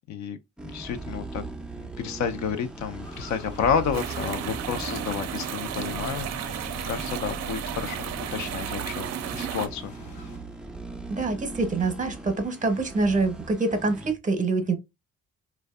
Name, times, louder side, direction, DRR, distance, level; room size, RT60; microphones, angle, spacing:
voice 1, 0.6-1.4 1.8-6.4 6.9-9.1 9.3-9.9, left 6 dB, 70° left, 0.5 m, -30 dB
sound 1, 0.6-14.1, right 2 dB, 5° right, 0.4 m, -39 dB
sound 2, 3.0-10.4, left 2 dB, 90° left, 1.0 m, -46 dB
sound 3, 3.9-9.7, right 10 dB, 60° right, 0.4 m, -34 dB
voice 2, 11.1-14.8, right 3 dB, 25° right, 0.7 m, -25 dB
2.5 x 2.2 x 2.3 m
cardioid pair, 90°, 30 cm